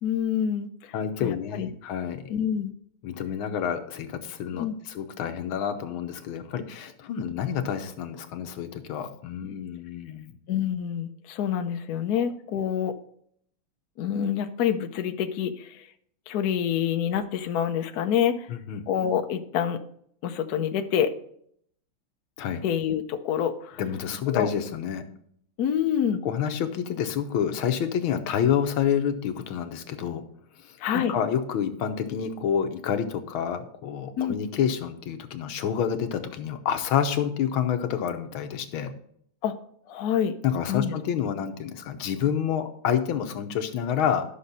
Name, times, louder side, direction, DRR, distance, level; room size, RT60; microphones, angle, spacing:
voice 1, 0.0-1.7 2.3-2.7 4.5-4.8 9.5-9.6 10.5-12.9 14.0-15.9 16.3-18.5 18.9-19.8 20.2-21.1 22.6-23.8 24.3-24.5 25.6-26.2 30.8-31.1 34.2-34.4 39.4-39.6 39.9-40.4 40.7-40.9, left 9 dB, 60° left, 7 dB, 1.1 m, -27 dB
voice 2, 0.9-2.2 3.0-10.3 12.2-12.3 18.5-18.8 22.4-22.6 23.8-25.0 26.2-30.2 30.9-38.9 40.4-44.2, left 8 dB, 80° left, 8 dB, 1.7 m, -28 dB
11.5 x 6.3 x 4.1 m, 0.66 s
omnidirectional pair, 2.3 m